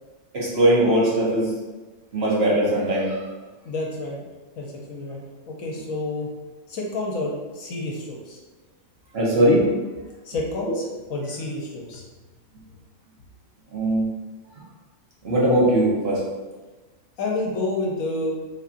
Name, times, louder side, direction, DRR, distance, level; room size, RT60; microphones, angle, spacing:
voice 1, 0.3-1.5 2.1-3.2 9.1-9.6 13.7-14.0 15.2-16.2, right 1 dB, 50° right, -6 dB, 1.2 m, -20 dB
voice 2, 3.6-4.2 4.6-6.3 6.7-8.4 10.2-10.8 11.1-12.1 17.2-18.4, left 2 dB, 70° left, -2 dB, 1.1 m, -29 dB
4.2 x 3.5 x 2.5 m, 1.2 s
omnidirectional pair, 1.5 m